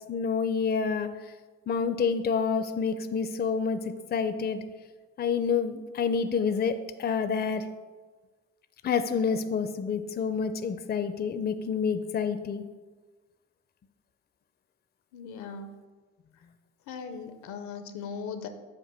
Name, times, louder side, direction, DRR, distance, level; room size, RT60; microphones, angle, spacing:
voice 1, 0.1-1.1 1.7-3.8 4.1-4.6 5.2-7.6 8.8-12.6, left 6 dB, 35° left, 11 dB, 0.5 m, -28 dB
voice 2, 15.1-15.8 16.9-18.5, left 5 dB, 75° left, 9 dB, 0.6 m, -39 dB
7.4 x 2.6 x 5.5 m, 1.3 s
supercardioid pair, 55°, 30 cm